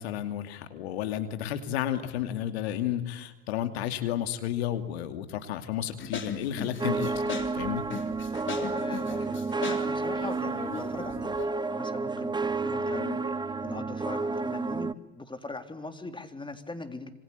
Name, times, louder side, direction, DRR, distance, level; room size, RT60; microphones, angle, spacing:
voice 1, 0.0-7.2 7.5-7.8, left 11 dB, 80° left, 8 dB, 2.6 m, -32 dB
sound 1, 6.0-11.5, left 6 dB, 40° left, 3.6 m, -38 dB
sound 2, 6.8-14.9, right 3 dB, 15° right, 1.0 m, -31 dB
voice 2, 8.4-17.1, left 2 dB, 15° left, 7 dB, 3.6 m, -40 dB
27.0 x 26.0 x 8.3 m, 1.0 s
hypercardioid pair, 75°, 31 cm